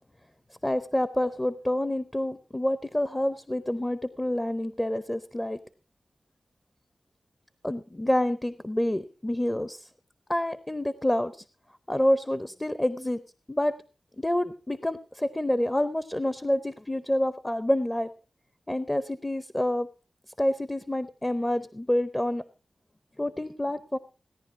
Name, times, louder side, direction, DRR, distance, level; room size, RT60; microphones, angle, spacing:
voice 1, 0.6-5.6 7.6-9.9 10.3-11.4 11.9-13.2 13.5-13.8 14.2-18.1 18.7-19.9 20.4-22.4 23.2-24.0, left 1 dB, 15° left, 13 dB, 0.6 m, -28 dB
17.0 x 10.5 x 4.6 m, 0.34 s
wide cardioid pair, 115°, 0 cm